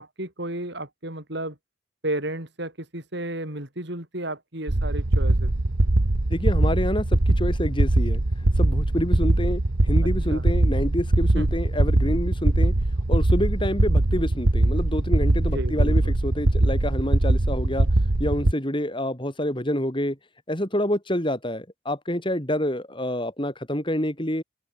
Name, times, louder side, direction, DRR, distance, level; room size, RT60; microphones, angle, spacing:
voice 1, 0.0-1.6 2.0-5.5 10.3-10.5 11.3-11.6 15.5-15.9, right 1 dB, 55° right, 4.7 m, -33 dB
sound 1, 4.7-18.5, right 2 dB, 75° right, 1.4 m, -21 dB
voice 2, 6.3-8.2 8.6-12.7 13.1-17.9 18.2-20.2 20.5-24.4, equal, 25° left, 3.9 m, -27 dB
open air
head